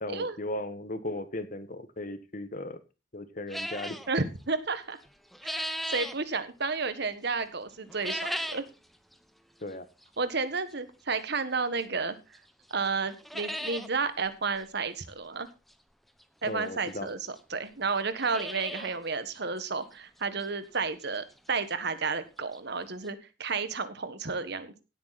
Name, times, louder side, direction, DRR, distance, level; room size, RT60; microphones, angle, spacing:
voice 1, 0.0-2.8 3.1-4.0 9.6-9.9 16.4-17.1, left 1 dB, 45° left, 12 dB, 1.5 m, -36 dB
sound 1, 3.5-4.1 5.0-6.2 7.9-8.7 9.1-9.2 10.0-10.1 11.8-11.9 12.3-12.4 12.7-12.8 13.1-13.9 14.2-14.3 14.6-14.7 16.2-16.3 17.1-17.2 17.4-17.5 18.0-19.0 19.3-19.4 19.9-20.0 20.4-20.5 22.3-22.4 22.5-22.6 23.1-23.2, equal, ahead, 1.1 m, -36 dB
voice 2, 4.1-5.0 5.4-8.6 10.2-12.2 12.7-15.5 16.4-17.2 17.5-24.7, right 4 dB, 60° right, 12 dB, 1.6 m, -32 dB
17.0 x 8.6 x 4.2 m, 0.30 s
head